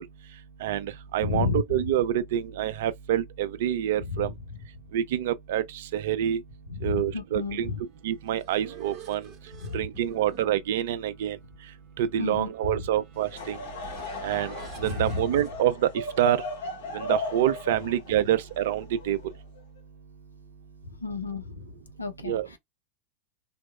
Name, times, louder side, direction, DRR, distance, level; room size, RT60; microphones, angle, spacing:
voice 1, 0.6-4.3 4.9-5.6 5.9-6.4 6.8-7.7 8.0-9.2 9.7-11.4 12.0-13.6 14.2-14.5 14.8-15.9 16.2-16.4 16.9-19.2 22.2-22.5, right 11 dB, 55° right, 0.3 m, -26 dB
voice 2, 1.2-1.8 4.1-4.2 6.8-7.8 9.6-9.8 12.2-12.5 14.8-15.2 21.0-21.6 22.0-22.6, left 4 dB, 80° left, 0.5 m, -31 dB
sound 1, 8.0-15.5, right 6 dB, 35° right, 0.7 m, -49 dB
Laughter / Crowd, 13.2-19.6, left 2 dB, 60° left, 0.9 m, -36 dB
2.9 x 2.0 x 2.2 m
figure-of-eight pair, 90°, 0 cm